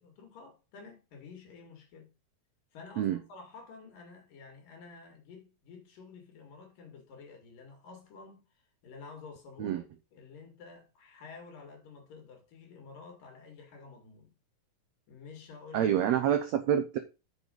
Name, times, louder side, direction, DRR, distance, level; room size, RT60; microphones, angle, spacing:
voice 1, 0.0-2.1 2.7-9.8 10.1-14.3 15.1-16.0, left 4 dB, 80° left, 3.8 m, -50 dB
voice 2, 15.7-17.0, right 10 dB, 70° right, 1.7 m, -27 dB
6.7 x 6.4 x 5.2 m
omnidirectional pair, 3.9 m